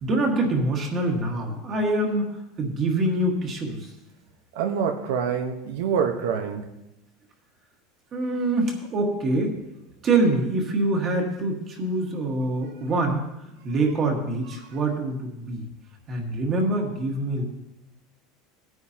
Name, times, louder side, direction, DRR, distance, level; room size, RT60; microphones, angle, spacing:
voice 1, 0.0-3.9 8.1-9.6 10.0-13.2 13.6-15.7 16.1-17.4, right 2 dB, 25° right, 1 dB, 1.6 m, -25 dB
voice 2, 4.5-6.6, right 7 dB, 85° right, 4 dB, 1.0 m, -26 dB
18.0 x 9.5 x 2.9 m, 0.89 s
supercardioid pair, 170°, 0 cm